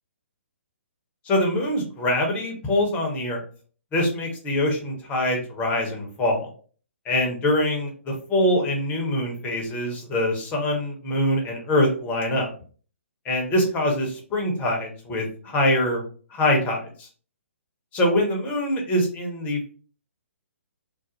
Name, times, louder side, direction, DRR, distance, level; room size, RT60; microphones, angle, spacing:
voice 1, 1.3-3.4 3.9-6.5 7.1-12.5 13.2-16.0 16.3-17.1 17.9-19.7, left 1 dB, 20° left, 1 dB, 0.7 m, -24 dB
2.4 x 2.0 x 2.8 m, 0.42 s
figure-of-eight pair, 130°, 7 cm